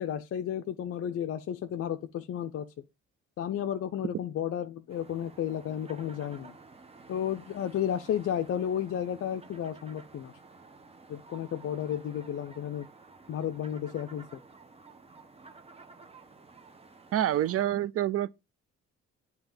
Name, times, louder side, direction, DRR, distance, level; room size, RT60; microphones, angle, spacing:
voice 1, 0.0-2.7 3.4-6.5 7.1-10.3 11.1-12.9 13.3-14.4, left 9 dB, 50° left, 0.5 m, -33 dB
sound 1, 4.9-17.6, right 3 dB, 20° right, 0.7 m, -53 dB
voice 2, 17.1-18.3, right 12 dB, 50° right, 0.4 m, -27 dB
8.7 x 2.9 x 3.8 m
cardioid pair, 90°, 30 cm